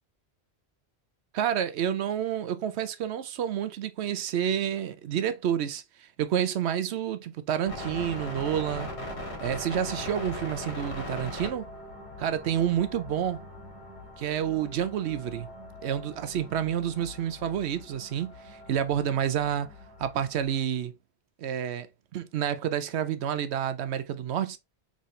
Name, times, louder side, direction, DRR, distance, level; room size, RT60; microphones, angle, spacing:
voice 1, 1.3-8.9 9.4-11.7 12.2-13.4 14.2-15.5 15.8-19.7 20.0-20.9 21.4-21.9 22.1-24.6, right 9 dB, 80° right, 0.9 m, -29 dB
sound 1, 7.7-20.6, left 1 dB, 80° left, 2.1 m, -40 dB
4.1 x 3.7 x 3.1 m
omnidirectional pair, 1.1 m